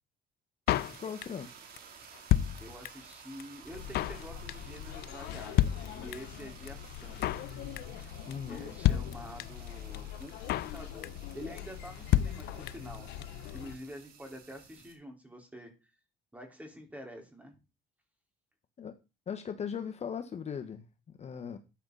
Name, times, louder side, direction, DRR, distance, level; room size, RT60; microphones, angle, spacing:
Drum kit, 0.7-1.5 1.8-1.9 2.0-3.1 3.4-3.5 3.7-4.2 4.5-4.8 5.0-5.1 5.3-5.4 5.6-6.4 6.7-6.8 6.9-7.5 7.8-8.0 8.3-8.4 8.6-8.7 8.8-9.7 9.9-10.0 10.2-10.8 11.0-11.3 11.6-11.7 11.9-12.0 12.1-13.0 13.2-13.3 13.5-13.6, left 13 dB, 70° left, 0.7 m, -29 dB
sound 1, 0.7-14.9, right 6 dB, 60° right, 3.6 m, -54 dB
voice 1, 1.0-1.5 8.3-8.6 18.8-18.9 19.3-21.6, left 7 dB, 40° left, 7 dB, 1.5 m, -38 dB
voice 2, 2.6-7.4 8.5-15.7 16.3-17.6, equal, 10° right, 2 dB, 4.6 m, -47 dB
sound 2, 3.7-13.8, left 10 dB, 90° left, 1.2 m, -44 dB
13.5 x 9.2 x 4.2 m, 0.29 s
cardioid pair, 110°, 17 cm